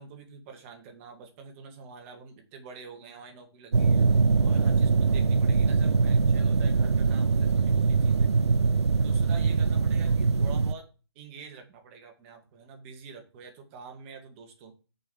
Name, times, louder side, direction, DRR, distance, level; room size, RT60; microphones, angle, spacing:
voice 1, 0.0-4.1 4.4-8.4 9.0-10.9 11.2-14.7, right 5 dB, 30° right, 4 dB, 2.1 m, -47 dB
sound 1, 3.7-10.7, right 4 dB, 80° right, 0.5 m, -23 dB
6.8 x 5.5 x 6.4 m, 0.34 s
figure-of-eight pair, 140°, 14 cm